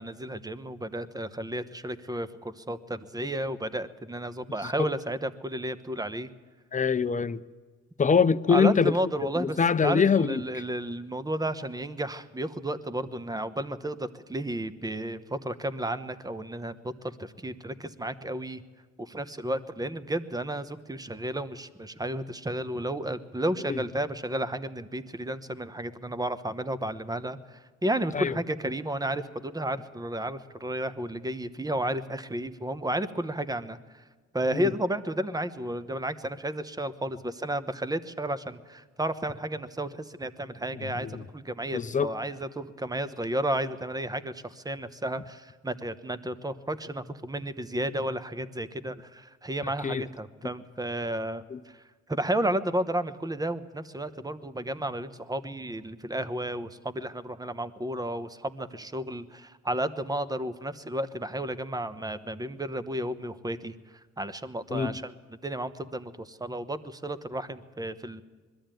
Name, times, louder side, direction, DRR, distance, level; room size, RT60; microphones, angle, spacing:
voice 1, 0.0-6.3 8.5-18.6 19.0-34.0 34.3-51.8 52.1-63.7 64.2-68.2, right 1 dB, 10° right, 1.1 m, -32 dB
voice 2, 6.7-7.4 8.0-8.9 9.4-10.4 23.7-23.8 28.1-28.3 34.5-34.7 41.0-41.2 41.7-42.1 49.8-50.0 51.5-51.6 64.7-64.9, left 6 dB, 25° left, 0.7 m, -24 dB
21.5 x 13.0 x 9.1 m
cardioid pair, 90°, 30 cm